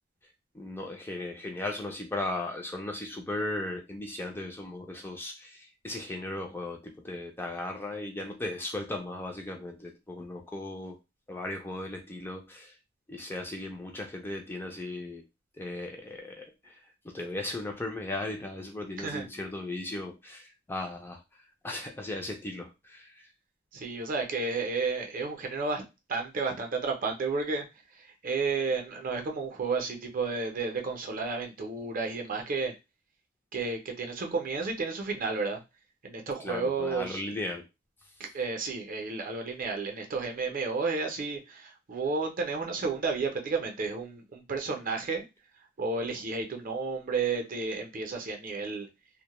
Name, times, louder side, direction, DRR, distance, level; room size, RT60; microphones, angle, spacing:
voice 1, 0.5-11.0 11.3-12.7 13.1-15.2 15.6-21.2 21.6-23.3 36.4-37.6, left 2 dB, 10° left, 2 dB, 0.3 m, -37 dB
voice 2, 23.7-25.8 26.1-27.6 28.0-32.7 33.5-35.6 36.0-37.2 38.2-45.2 45.8-48.9, right 4 dB, 45° right, 3 dB, 0.5 m, -32 dB
2.1 x 2.1 x 2.9 m, 0.25 s
head